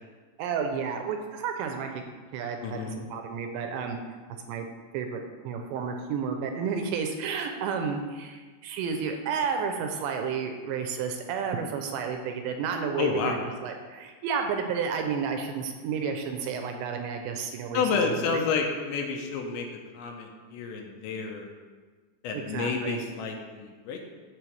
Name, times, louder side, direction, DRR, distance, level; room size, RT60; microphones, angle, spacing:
voice 1, 0.4-2.0 2.3-4.0 4.5-4.7 4.9-13.4 13.6-18.4 22.3-23.0, right 6 dB, 85° right, 4 dB, 2.8 m, -31 dB
voice 2, 2.6-3.0 13.0-13.4 17.7-19.7 19.9-21.5 22.2-24.0, left 5 dB, 80° left, 2 dB, 3.0 m, -30 dB
11.0 x 7.6 x 3.4 m, 1.4 s
omnidirectional pair, 5.4 m